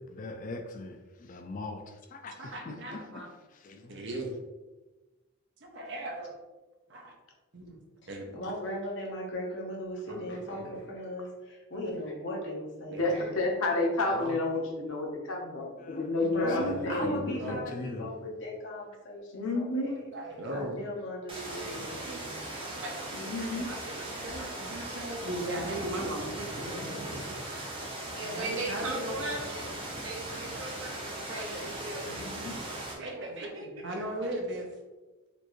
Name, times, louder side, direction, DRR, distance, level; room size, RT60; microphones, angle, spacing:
voice 1, 0.1-1.8 2.1-2.3 2.6-3.0 3.6-4.0 15.8-16.1 17.0-18.1, left 2 dB, 40° left, 5 dB, 0.3 m, -40 dB
voice 2, 2.4-3.3 3.9-4.3 5.6-6.3 6.9-7.1 7.5-7.8 8.1-8.3 10.1-10.9 11.7-12.0 12.9-13.1 14.1-14.3 16.4-17.6 19.8-20.8 22.0-27.0 28.2-29.2 30.4-30.6 31.3-32.3 33.0-34.7, right 1 dB, 55° right, 1 dB, 0.8 m, -38 dB
voice 3, 8.3-13.2 16.2-20.1 20.5-22.6 24.0-24.3, left 1 dB, 55° left, -2 dB, 1.0 m, -38 dB
voice 4, 13.0-17.1 19.3-19.9 23.1-23.7 26.6-27.1 32.0-32.5, left 2 dB, 85° left, 0 dB, 0.9 m, -31 dB
sound 1, 21.3-32.9, right 1 dB, 25° right, 0.7 m, -39 dB
voice 5, 28.1-29.7 30.0-31.7 33.5-33.6 33.9-34.0, right 2 dB, 75° right, -2 dB, 1.0 m, -38 dB
4.3 x 2.6 x 3.0 m, 1.1 s
head